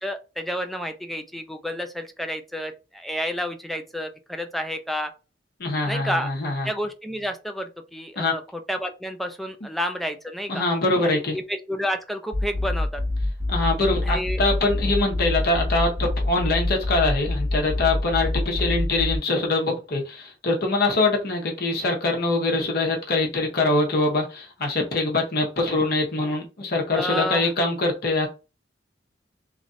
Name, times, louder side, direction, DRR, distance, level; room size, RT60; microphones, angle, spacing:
voice 1, 0.0-5.1 5.9-6.3 6.6-10.6 11.0-11.2 11.5-13.0 14.0-14.4 26.9-27.5, equal, ahead, 0.3 m, -30 dB
voice 2, 5.6-6.7 8.2-8.3 10.5-11.4 13.5-28.3, left 2 dB, 55° left, 0.9 m, -23 dB
sound 1, 12.3-19.2, left 2 dB, 40° right, 1.7 m, -26 dB
3.1 x 2.5 x 2.5 m
head